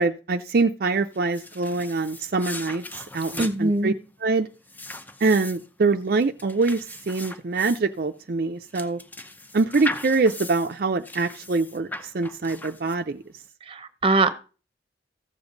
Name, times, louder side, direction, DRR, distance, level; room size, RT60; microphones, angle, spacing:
voice 1, 0.0-3.9 4.2-4.5 5.2-9.0 9.5-13.2, right 3 dB, 55° right, 6 dB, 0.5 m, -24 dB
sound 1, 1.1-13.3, left 2 dB, 10° left, 0.6 m, -39 dB
voice 2, 3.4-3.9 13.7-14.3, right 2 dB, 30° right, 12 dB, 0.9 m, -22 dB
15.0 x 7.1 x 3.9 m, 0.36 s
head